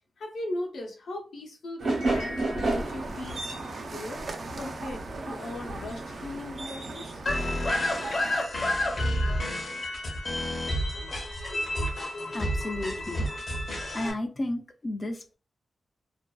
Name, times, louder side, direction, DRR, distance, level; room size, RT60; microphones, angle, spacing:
voice 1, 0.2-3.4 3.9-7.2, left 1 dB, 85° left, 1 dB, 0.7 m, -38 dB
sound 1, 1.8-8.3, right 2 dB, 75° right, 0.8 m, -34 dB
sound 2, 2.6-8.4, right 3 dB, 60° right, 0.4 m, -39 dB
sound 3, 7.3-14.1, left 1 dB, 55° left, 0.7 m, -29 dB
voice 2, 12.3-13.3 13.9-15.4, left 1 dB, 35° left, 5 dB, 0.3 m, -33 dB
2.5 x 2.2 x 2.2 m, 0.35 s
cardioid pair, 75°, 0 cm